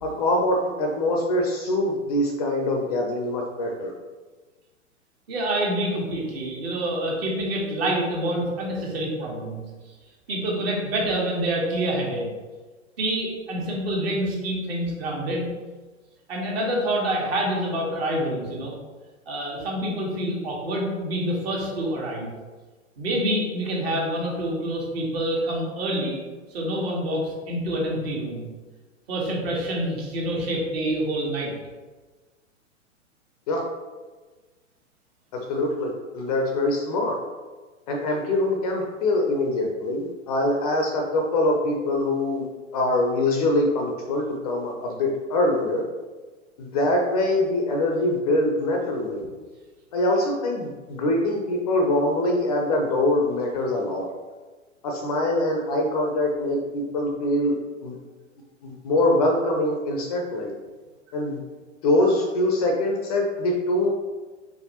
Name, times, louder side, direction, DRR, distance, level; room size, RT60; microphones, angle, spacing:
voice 1, 0.0-3.9 33.5-33.6 35.3-37.2 37.9-42.5 42.7-45.8 46.6-49.2 49.9-54.1 54.8-57.9 58.6-60.5 61.1-61.4 61.8-63.9, left 1 dB, 30° left, 1 dB, 0.5 m, -24 dB
voice 2, 5.3-9.6 10.3-12.3 13.0-15.4 16.3-18.7 19.3-22.3 23.0-26.2 26.5-28.5 29.1-31.5, right 1 dB, 50° right, -2 dB, 1.4 m, -27 dB
4.6 x 3.1 x 2.9 m, 1.3 s
figure-of-eight pair, 100°, 39 cm